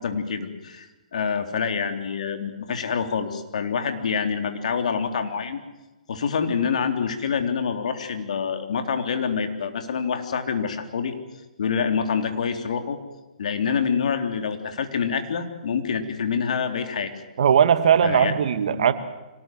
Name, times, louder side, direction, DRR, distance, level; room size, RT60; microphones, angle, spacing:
voice 1, 0.0-5.6 6.1-11.1 11.6-13.0 13.4-17.1 18.0-18.3 18.7-18.9, left 6 dB, 65° left, 7 dB, 3.3 m, -26 dB
voice 2, 17.4-18.9, right 8 dB, 60° right, 10 dB, 2.1 m, -18 dB
25.5 x 18.5 x 7.8 m, 1.1 s
hypercardioid pair, 130°, 4 cm